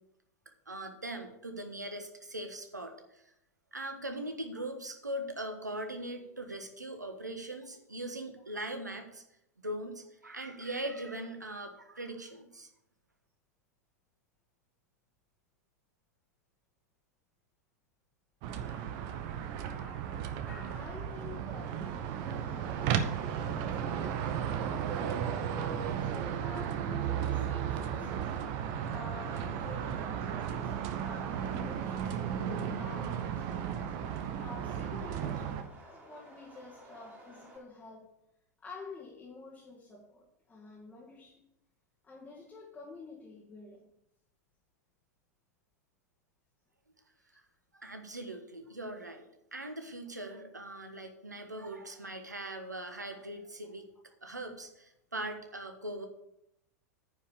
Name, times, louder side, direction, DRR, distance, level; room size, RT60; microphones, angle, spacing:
voice 1, 0.7-3.2 3.7-9.2 9.6-12.7 47.7-49.2 49.5-53.8 54.2-56.1, right 1 dB, 85° right, 6 dB, 1.4 m, -40 dB
sound 1, 18.4-35.6, right 8 dB, 45° right, 1.0 m, -34 dB
sound 2, 18.7-21.7 22.0-23.5, left 3 dB, 75° left, 3.9 m, -58 dB
voice 2, 20.7-24.3 24.9-28.3 28.9-33.9 34.4-38.1 38.6-41.4 42.0-43.8, left 3 dB, 15° left, -5 dB, 2.3 m, -50 dB
Subway metro underground, 21.4-37.6, right 2 dB, 20° right, 3.4 m, -56 dB
9.6 x 5.6 x 7.1 m, 0.82 s
figure-of-eight pair, 95°, 9 cm